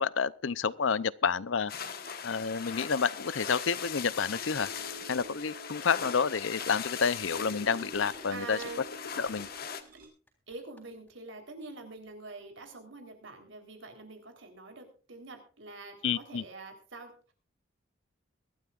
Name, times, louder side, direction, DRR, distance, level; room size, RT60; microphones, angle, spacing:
voice 1, 0.0-1.7 2.2-4.7 5.1-8.6 9.2-9.5 16.0-16.4, left 6 dB, 75° left, 0.6 m, -29 dB
sound 1, 1.7-9.8, left 7 dB, 50° left, 1.3 m, -40 dB
sound 2, 4.1-10.1, right 2 dB, 50° right, 5.9 m, -49 dB
voice 2, 8.3-8.8 10.5-17.3, right 3 dB, 75° right, 3.8 m, -45 dB
sound 3, 8.6-11.1, left 1 dB, 10° left, 3.7 m, -56 dB
23.5 x 12.0 x 2.5 m
head